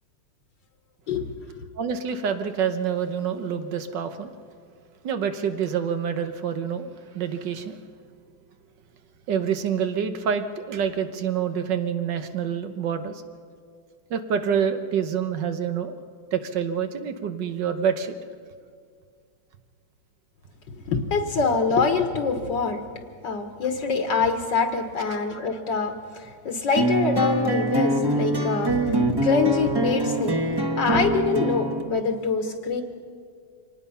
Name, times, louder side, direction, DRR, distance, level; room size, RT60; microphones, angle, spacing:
voice 1, 1.8-4.3 5.0-7.8 9.3-13.2 14.1-15.9 16.3-18.1, right 7 dB, 65° right, 8 dB, 1.7 m, -27 dB
voice 2, 20.7-22.8 23.2-32.8, left 4 dB, 65° left, 5 dB, 1.8 m, -25 dB
sound 1, 26.8-31.8, right 1 dB, 15° right, 1.2 m, -24 dB
24.5 x 19.0 x 5.6 m, 2.2 s
omnidirectional pair, 2.1 m